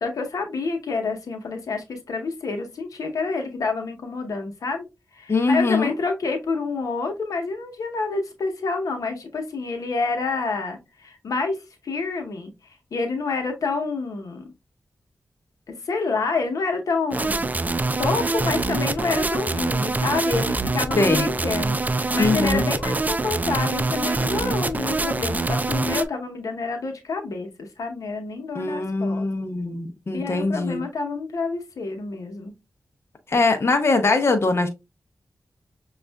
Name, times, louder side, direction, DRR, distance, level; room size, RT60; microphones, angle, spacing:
voice 1, 0.0-4.8 5.1-11.6 11.8-12.5 12.9-14.5 15.7-17.5 18.0-29.3 30.1-32.5, left 4 dB, 85° left, 0.8 m, -28 dB
voice 2, 5.3-5.9 21.0-21.3 22.2-22.6 28.5-30.8 33.3-34.7, left 3 dB, 50° left, 0.7 m, -22 dB
sound 1, 17.1-26.0, right 3 dB, 30° right, 0.3 m, -24 dB
6.2 x 2.4 x 2.2 m
wide cardioid pair, 70°, 6 cm